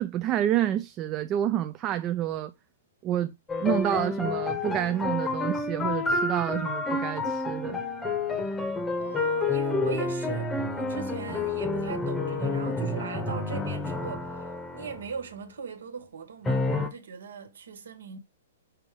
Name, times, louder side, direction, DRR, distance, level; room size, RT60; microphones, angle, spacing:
voice 1, 0.0-2.5 3.0-3.3 3.6-7.8, right 11 dB, 25° right, 0.3 m, -28 dB
sound 1, 3.5-15.1 16.5-16.9, left 3 dB, 10° left, 0.8 m, -29 dB
voice 2, 9.0-14.3 14.7-18.2, right 6 dB, 90° right, 1.4 m, -39 dB
5.7 x 3.5 x 5.0 m
hypercardioid pair, 160°, 0 cm